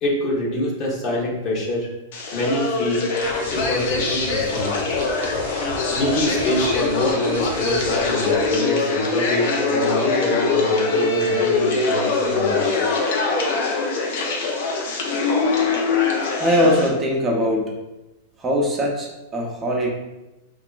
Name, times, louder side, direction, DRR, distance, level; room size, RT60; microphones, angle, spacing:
voice 1, 0.0-1.9 2.3-3.1 3.5-4.7 5.9-12.9, left 1 dB, 40° left, -3 dB, 0.9 m, -25 dB
sound 1, 2.1-16.9, left 3 dB, 65° left, 0.6 m, -22 dB
sound 2, 3.2-8.5, right 1 dB, 80° right, 0.6 m, -36 dB
voice 2, 16.4-17.7 18.4-19.9, equal, 20° right, -1 dB, 0.6 m, -21 dB
2.7 x 2.4 x 2.3 m, 1.0 s
hypercardioid pair, 120°, 0 cm